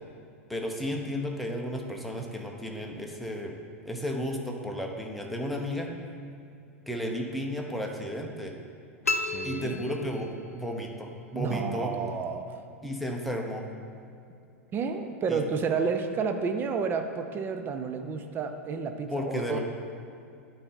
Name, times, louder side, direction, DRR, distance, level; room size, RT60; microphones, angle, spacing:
voice 1, 0.5-3.5 3.8-5.9 6.9-8.5 9.4-11.9 12.8-13.6 15.3-15.4 19.1-19.6, equal, ahead, 0 dB, 0.9 m, -33 dB
sound 1, 9.0-10.6, left 3 dB, 85° left, 0.5 m, -32 dB
voice 2, 9.3-9.8 11.3-12.5 14.7-19.6, right 5 dB, 30° right, 7 dB, 0.6 m, -31 dB
11.5 x 4.3 x 3.9 m, 2.5 s
figure-of-eight pair, 90°, 8 cm